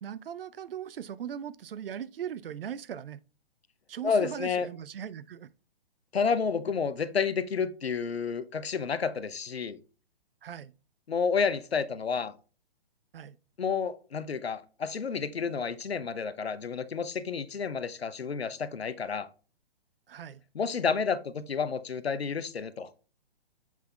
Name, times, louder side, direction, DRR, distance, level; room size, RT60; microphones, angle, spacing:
voice 1, 0.0-3.2 3.9-5.5 10.4-10.7 13.1-13.4 20.1-20.4, right 9 dB, 65° right, 0.5 m, -39 dB
voice 2, 4.0-4.7 6.1-9.8 11.1-12.3 13.6-19.3 20.5-22.9, left 5 dB, 85° left, 0.7 m, -30 dB
7.4 x 5.6 x 2.3 m
figure-of-eight pair, 125°, 31 cm